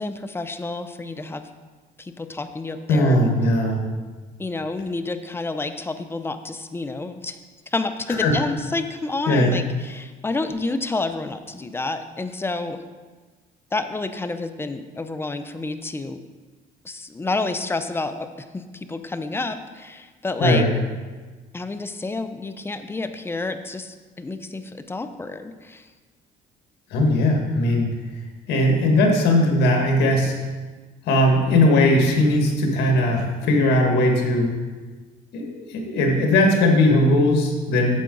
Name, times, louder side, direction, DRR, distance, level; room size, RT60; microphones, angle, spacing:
voice 1, 0.0-1.5 2.0-3.3 4.4-7.4 7.7-12.8 13.7-16.2 16.8-18.3 18.5-20.7 21.5-25.9, left 3 dB, 15° left, 9 dB, 0.5 m, -29 dB
voice 2, 2.9-3.8 8.2-8.3 9.3-9.5 20.4-20.7 26.9-27.9 28.5-30.3 31.1-34.5 35.3-38.0, left 1 dB, 80° left, 1 dB, 1.8 m, -19 dB
8.5 x 7.5 x 3.9 m, 1.3 s
cardioid pair, 110°, 17 cm